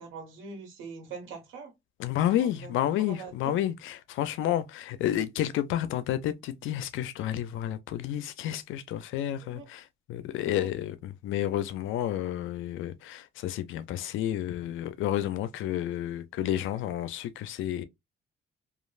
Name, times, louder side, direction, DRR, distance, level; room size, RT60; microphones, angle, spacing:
voice 1, 0.0-1.7 2.4-2.7 3.0-3.5 9.4-9.7 10.4-10.7, right 5 dB, 85° right, 1.2 m, -43 dB
voice 2, 2.0-17.8, left 12 dB, 85° left, 0.4 m, -30 dB
3.1 x 2.3 x 2.3 m
cardioid pair, 90°, 20 cm